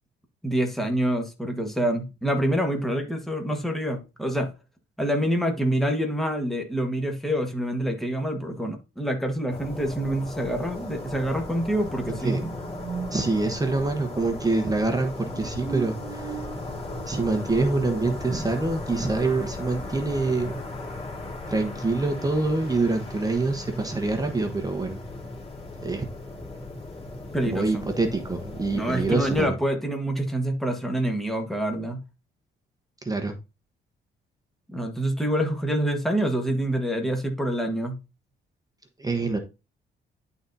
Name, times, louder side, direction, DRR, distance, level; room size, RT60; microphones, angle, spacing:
voice 1, 0.4-4.5 5.0-12.5 27.3-27.9 28.7-32.0 34.7-38.0, right 1 dB, ahead, 1.6 m, -26 dB
sound 1, 9.5-29.4, left 2 dB, 30° left, 2.0 m, -37 dB
sound 2, 12.1-18.1, right 7 dB, 80° right, 1.1 m, -40 dB
voice 2, 13.1-16.4 17.1-20.6 21.5-25.0 25.8-26.1 27.4-29.5 33.0-33.4 39.0-39.4, right 3 dB, 20° right, 1.1 m, -26 dB
11.0 x 4.0 x 2.7 m
cardioid pair, 90°, 20 cm